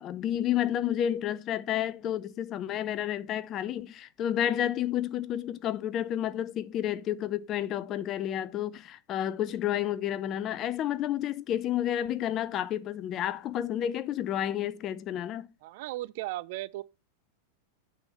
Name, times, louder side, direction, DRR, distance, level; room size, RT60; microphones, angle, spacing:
voice 1, 0.0-15.5, left 11 dB, 35° left, 0.5 m, -30 dB
voice 2, 15.6-16.8, right 17 dB, 50° right, 0.3 m, -36 dB
8.8 x 3.6 x 5.5 m
figure-of-eight pair, 90°, 0 cm